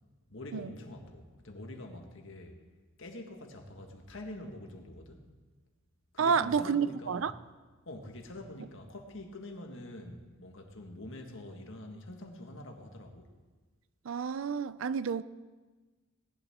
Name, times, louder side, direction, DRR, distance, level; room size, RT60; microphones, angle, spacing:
voice 1, 0.3-2.6 3.0-5.3 6.1-7.3 7.9-13.3, left 1 dB, 65° left, 1.7 m, -45 dB
voice 2, 6.2-7.3 14.0-15.2, right 6 dB, 70° right, 0.4 m, -29 dB
18.5 x 11.5 x 3.6 m
head